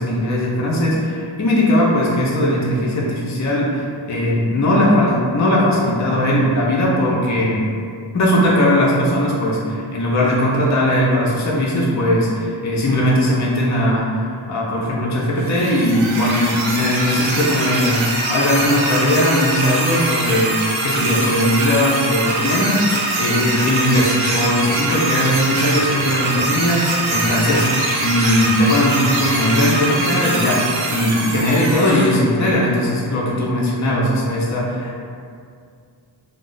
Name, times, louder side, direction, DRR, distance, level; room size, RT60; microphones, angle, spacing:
voice 1, 0.0-7.6 8.1-27.7 28.0-35.0, left 1 dB, 40° left, -4 dB, 0.5 m, -19 dB
sound 1, 15.4-32.1, right 2 dB, 75° right, 0.6 m, -22 dB
2.3 x 2.0 x 3.7 m, 2.3 s
wide cardioid pair, 95°, 47 cm